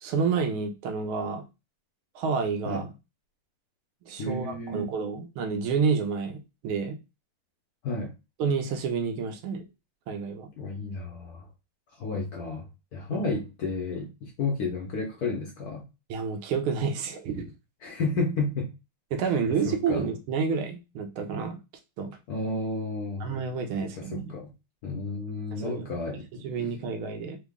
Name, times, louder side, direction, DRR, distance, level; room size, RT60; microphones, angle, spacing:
voice 1, 0.0-1.4 2.1-2.9 4.1-7.0 8.4-9.7 10.1-10.5 13.1-13.2 16.1-17.5 19.1-21.6 22.0-22.1 23.2-24.3 25.5-25.9 26.4-27.4, right 5 dB, 75° right, 6 dB, 1.4 m, -29 dB
voice 2, 4.2-4.9 7.8-8.1 10.6-11.5 12.0-12.6 12.9-15.8 17.8-18.7 19.5-20.0 22.3-23.3 23.8-24.5 24.8-26.4, left 3 dB, 80° left, 0 dB, 0.8 m, -32 dB
3.7 x 2.0 x 3.4 m, 0.26 s
omnidirectional pair, 2.4 m